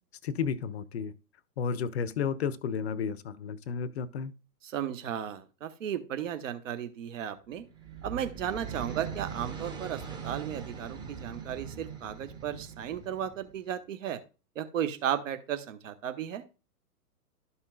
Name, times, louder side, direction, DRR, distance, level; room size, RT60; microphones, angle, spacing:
voice 1, 0.2-1.1 1.6-4.3, left 6 dB, 45° left, 0.6 m, -32 dB
voice 2, 4.6-7.6 8.0-14.2 14.5-16.4, right 9 dB, 55° right, 1.1 m, -35 dB
sound 1, 7.6-13.6, right 7 dB, 10° right, 0.8 m, -41 dB
12.5 x 5.5 x 2.3 m
figure-of-eight pair, 120°, 47 cm